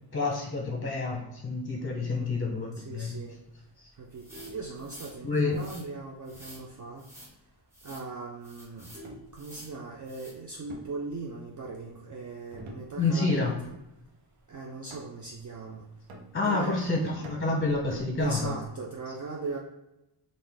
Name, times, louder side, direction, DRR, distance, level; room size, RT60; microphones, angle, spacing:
voice 1, 0.1-3.2 3.8-3.9 5.2-5.6 13.0-13.5 16.3-18.6, left 3 dB, 25° left, -1 dB, 0.7 m, -28 dB
voice 2, 2.8-3.4 4.0-7.0 7.8-8.9 9.3-13.7 14.5-15.9 16.4-16.9 18.2-19.6, right 3 dB, 40° right, -1 dB, 0.5 m, -39 dB
Vehicle horn car horn honking, 4.0-5.5 6.0-6.2 6.5-6.6 7.0-7.1 7.4-7.8 8.4-10.2 10.6-10.7 10.9-11.0 11.4-11.5 11.9-12.0 12.3-14.3 15.5-15.9, right 1 dB, 25° right, 0.9 m, -50 dB
sound 1, 4.1-5.1 5.5-5.8 6.3-6.6 7.0-7.3 7.7-8.1 8.4-9.0 9.3-9.7 10.1-10.3, equal, 5° right, 1.1 m, -50 dB
sound 2, 9.0-9.4 10.7-11.7 12.5-13.3 13.6-14.0 14.9-15.4 16.1-16.8 17.2-18.7, right 2 dB, 85° right, 0.8 m, -46 dB
3.8 x 2.5 x 3.4 m, 0.90 s
wide cardioid pair, 130°, 47 cm